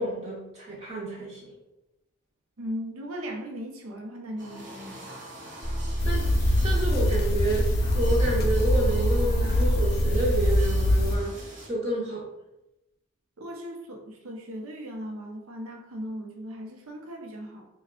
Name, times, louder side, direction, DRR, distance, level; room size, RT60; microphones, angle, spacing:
voice 1, 0.0-1.6 6.0-11.4 11.7-12.2, right 2 dB, 30° right, -4 dB, 0.5 m, -30 dB
voice 2, 2.6-5.1 13.4-17.7, equal, 90° right, 3 dB, 0.6 m, -38 dB
sound 1, 4.4-11.7, right 1 dB, 55° right, 0.9 m, -44 dB
sound 2, 5.6-10.6, equal, 30° left, 0.8 m, -29 dB
sound 3, 6.0-11.2, left 1 dB, 50° left, 0.4 m, -24 dB
3.2 x 2.3 x 3.6 m, 0.93 s
head